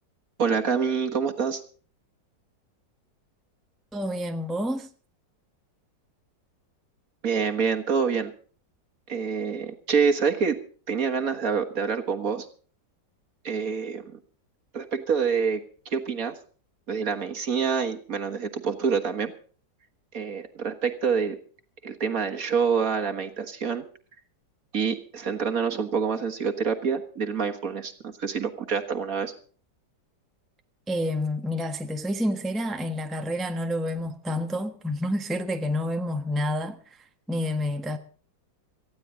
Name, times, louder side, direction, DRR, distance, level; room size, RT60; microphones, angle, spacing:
voice 1, 0.4-1.6 7.2-8.3 9.1-10.6 10.9-12.5 13.4-14.2 14.7-16.3 16.9-19.3 20.1-21.4 21.8-23.8 24.7-29.3, right 6 dB, 50° right, 1.8 m, -26 dB
voice 2, 3.9-4.9 30.9-37.0 37.3-38.0, left 1 dB, ahead, 1.1 m, -29 dB
18.5 x 15.0 x 3.9 m
omnidirectional pair, 2.0 m